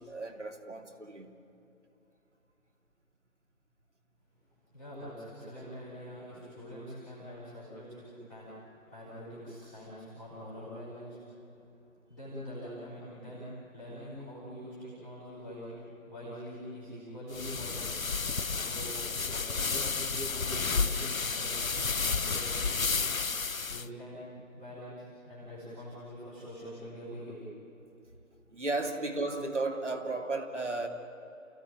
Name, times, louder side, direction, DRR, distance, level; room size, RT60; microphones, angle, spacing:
voice 1, 0.0-1.3 18.6-18.7 28.5-30.9, right 2 dB, 60° right, 3 dB, 2.9 m, -34 dB
voice 2, 4.7-8.5 8.9-11.2 12.1-15.8 16.1-17.9 18.6-22.9 23.5-27.5, equal, 5° left, -14 dB, 3.3 m, -44 dB
sound 1, 17.3-23.9, left 4 dB, 80° left, 0.8 m, -31 dB
29.5 x 16.0 x 8.8 m, 3.0 s
figure-of-eight pair, 165°, 40 cm